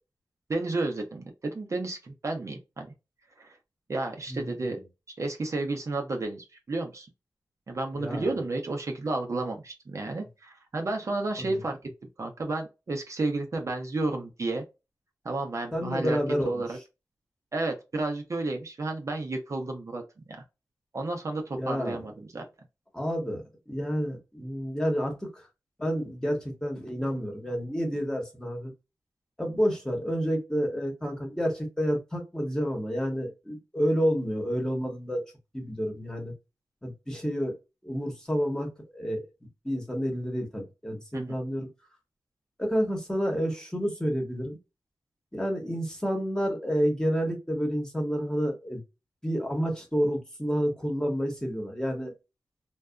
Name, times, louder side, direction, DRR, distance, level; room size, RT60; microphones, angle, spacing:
voice 1, 0.5-2.9 3.4-3.6 3.9-4.8 5.2-7.1 7.7-11.8 12.2-14.6 15.2-16.8 17.5-20.0 20.3-20.4 20.9-22.4 41.1-41.4, right 2 dB, 50° right, 2 dB, 0.6 m, -32 dB
voice 2, 4.3-4.6 7.9-8.3 11.4-11.5 15.7-16.6 21.6-22.0 22.9-25.4 25.8-28.7 29.4-35.2 35.5-36.3 36.8-37.5 37.8-39.2 39.6-41.7 42.6-44.6 45.3-48.8 49.2-52.1, equal, 10° left, 2 dB, 1.1 m, -29 dB
2.6 x 2.3 x 2.3 m, 0.25 s
wide cardioid pair, 80°, 7 cm